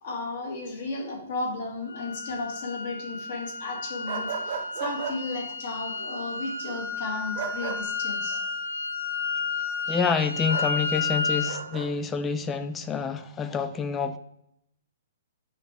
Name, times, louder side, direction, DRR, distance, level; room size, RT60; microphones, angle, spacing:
voice 1, 0.0-8.4, left 3 dB, 40° left, 2 dB, 1.7 m, -34 dB
sound 1, 1.9-11.6, left 4 dB, 70° left, 0.9 m, -32 dB
sound 2, 4.1-5.2 7.4-7.8 10.5-10.7 11.5-11.9, right 6 dB, 35° right, 1.0 m, -34 dB
voice 2, 9.9-14.2, left 6 dB, 10° left, 11 dB, 0.3 m, -28 dB
8.5 x 5.8 x 3.4 m, 0.76 s
hypercardioid pair, 175°, 0 cm